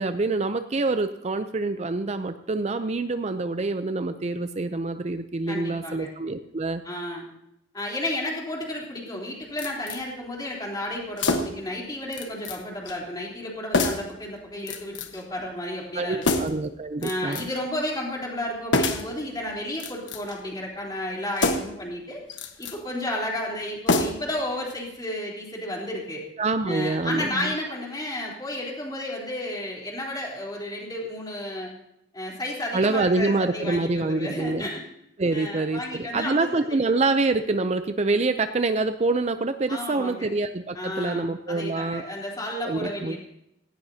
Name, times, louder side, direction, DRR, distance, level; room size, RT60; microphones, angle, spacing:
voice 1, 0.0-6.8 15.9-17.4 26.4-27.5 32.7-34.6 35.2-42.0 42.7-43.2, right 3 dB, 35° right, 9 dB, 0.5 m, -26 dB
voice 2, 5.5-6.1 6.8-7.2 7.7-16.4 17.0-22.2 22.6-26.2 26.7-31.7 32.1-34.8 35.3-36.8 39.7-40.3 40.7-43.2, left 1 dB, 20° left, -2 dB, 3.5 m, -32 dB
sound 1, 9.6-10.0 11.2-11.7 12.1-12.6 12.9-13.0 13.7-14.1 14.7-15.2 16.2-16.7 17.0-17.6 18.7-19.1 19.7-20.4 21.4-21.8 22.3-22.8 23.9-24.4 24.7-24.8, left 2 dB, 80° left, 1.3 m, -26 dB
17.5 x 16.5 x 2.8 m, 0.79 s
head